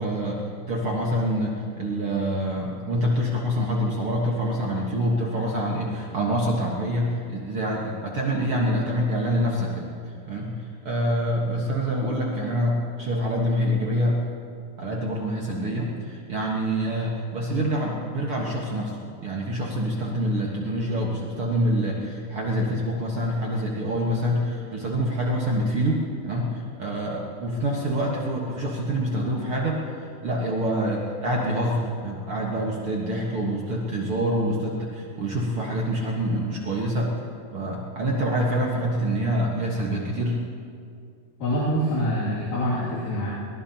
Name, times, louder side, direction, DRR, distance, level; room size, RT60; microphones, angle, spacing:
voice 1, 0.0-9.9 10.3-10.6 10.8-14.2 14.8-37.1 37.5-40.4, equal, 50° right, -3 dB, 1.9 m, -26 dB
voice 2, 41.4-43.3, equal, 90° left, -9 dB, 4.4 m, -25 dB
23.0 x 20.0 x 2.9 m, 2.4 s
omnidirectional pair, 3.8 m